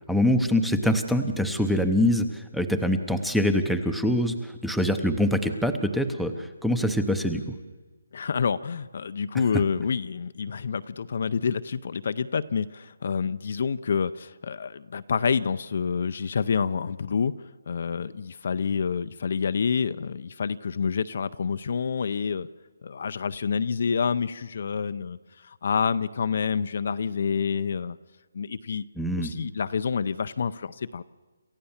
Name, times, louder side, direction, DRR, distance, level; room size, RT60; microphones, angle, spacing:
voice 1, 0.1-7.6 29.0-29.3, equal, ahead, 8 dB, 0.7 m, -24 dB
voice 2, 8.1-17.3 17.7-22.5 22.8-28.0 28.3-28.8 29.2-31.0, left 6 dB, 45° left, 12 dB, 0.5 m, -28 dB
27.5 x 14.5 x 7.2 m, 1.3 s
hypercardioid pair, 175°, 0 cm